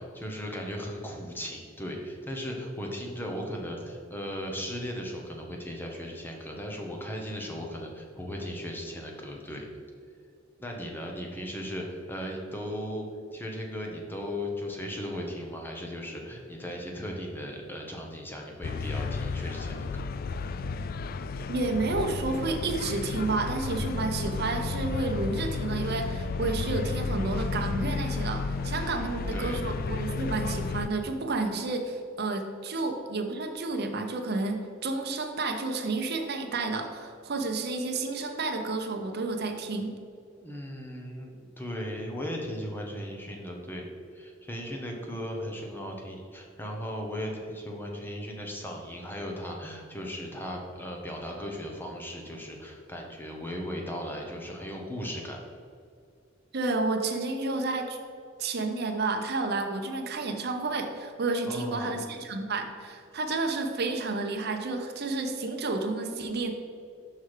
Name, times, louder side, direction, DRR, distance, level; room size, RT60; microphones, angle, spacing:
voice 1, 0.0-9.7 10.6-13.1 13.3-20.0 28.8-29.6 40.4-43.8 44.1-55.4 61.5-62.0, equal, 10° left, 0 dB, 1.0 m, -37 dB
sound 1, 18.6-30.9, left 4 dB, 50° left, 0.3 m, -32 dB
voice 2, 21.5-40.0 56.5-58.0 58.4-66.5, right 3 dB, 55° right, 4 dB, 0.8 m, -31 dB
6.2 x 5.7 x 4.9 m, 2.4 s
head